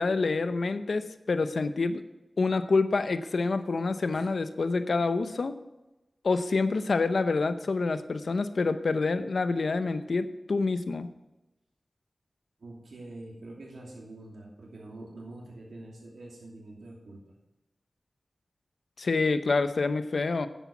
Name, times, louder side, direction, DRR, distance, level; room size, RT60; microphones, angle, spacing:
voice 1, 0.0-2.0 2.4-5.5 6.2-11.1 19.0-20.5, left 3 dB, 80° left, 10 dB, 0.8 m, -27 dB
voice 2, 12.6-17.2, right 2 dB, 90° right, -3 dB, 2.7 m, -45 dB
10.5 x 8.1 x 5.9 m, 1.0 s
cardioid pair, 45°, 0 cm